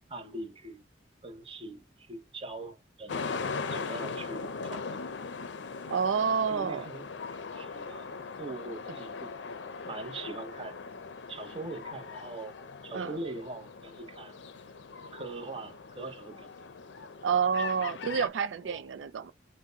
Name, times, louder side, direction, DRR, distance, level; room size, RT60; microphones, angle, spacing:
voice 1, 0.1-0.8 1.2-3.3 3.7-5.0 6.4-9.3 9.8-10.8 11.3-12.6 12.8-14.4 15.1-16.5 18.6-18.8, right 2 dB, 30° right, 0.8 m, -42 dB
sound 1, 3.1-18.3, left 4 dB, 75° left, 0.5 m, -40 dB
voice 2, 5.9-6.9 12.9-13.2 17.2-19.3, right 6 dB, 90° right, 0.4 m, -29 dB
5.9 x 2.2 x 3.9 m
head